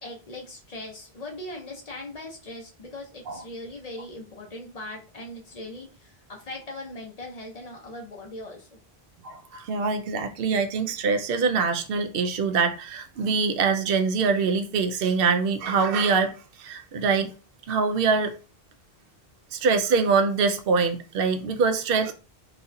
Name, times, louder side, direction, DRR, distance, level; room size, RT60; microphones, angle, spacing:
voice 1, 0.0-8.8, left 1 dB, 40° left, 0.9 m, -40 dB
voice 2, 9.2-17.3 17.7-18.3 19.5-22.1, right 5 dB, 70° right, 0.7 m, -24 dB
4.0 x 2.4 x 2.7 m
omnidirectional pair, 1.0 m